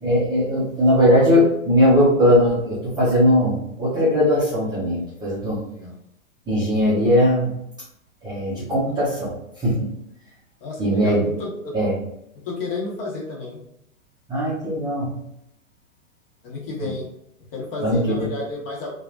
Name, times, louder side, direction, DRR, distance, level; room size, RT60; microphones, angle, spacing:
voice 1, 0.0-5.6 6.5-7.6 8.2-9.9 10.8-11.3 11.7-11.9 14.3-15.1 16.8-16.9 17.8-18.3, equal, 10° right, -8 dB, 0.6 m, -19 dB
voice 2, 10.6-11.1 12.4-13.6 16.4-17.0 17.5-18.9, left 3 dB, 45° left, -3 dB, 1.2 m, -31 dB
2.8 x 2.3 x 2.5 m, 0.78 s
hypercardioid pair, 120°, 40 cm